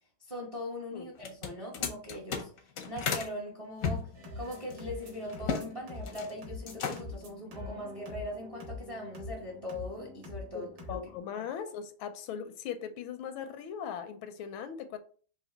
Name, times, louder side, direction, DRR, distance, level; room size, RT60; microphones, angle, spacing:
voice 1, 0.3-10.7, left 1 dB, 30° right, 0.6 m, -40 dB
sound 1, 1.2-3.3 3.8-5.7 5.9-6.3 6.6-7.2, left 6 dB, 65° left, 0.9 m, -35 dB
sound 2, 4.1-11.2, left 2 dB, 60° right, 2.2 m, -44 dB
voice 2, 10.5-15.0, left 8 dB, 80° left, 1.4 m, -39 dB
5.0 x 2.7 x 3.9 m
omnidirectional pair, 2.2 m